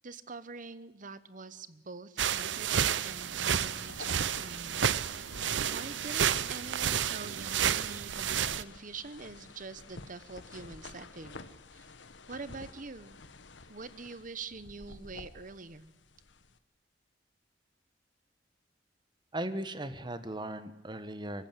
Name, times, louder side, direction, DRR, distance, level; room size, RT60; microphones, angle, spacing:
voice 1, 0.0-5.4 5.6-11.4 11.7-11.9 12.3-13.2 13.7-15.9, right 4 dB, 45° right, 15 dB, 1.1 m, -45 dB
sound 1, 2.2-8.6, right 8 dB, 80° right, 0.7 m, -31 dB
sound 2, 3.2-16.6, left 3 dB, 85° left, 1.3 m, -50 dB
voice 2, 19.3-21.5, right 1 dB, 25° right, 12 dB, 1.2 m, -37 dB
23.0 x 14.5 x 9.3 m, 0.90 s
head